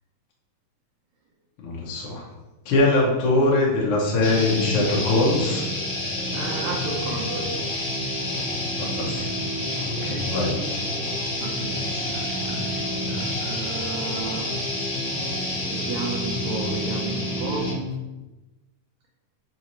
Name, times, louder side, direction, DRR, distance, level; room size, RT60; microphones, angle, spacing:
voice 1, 1.6-2.2 2.6-5.6 8.8-9.3 10.3-10.5, left 2 dB, 70° left, -3 dB, 1.3 m, -22 dB
sound 1, 4.2-17.9, left 1 dB, 45° left, 0.9 m, -28 dB
voice 2, 6.3-7.5 9.7-10.3 11.4-14.5 15.7-17.7, right 4 dB, 80° right, -1 dB, 1.6 m, -34 dB
4.9 x 2.7 x 2.9 m, 1.1 s
omnidirectional pair, 3.4 m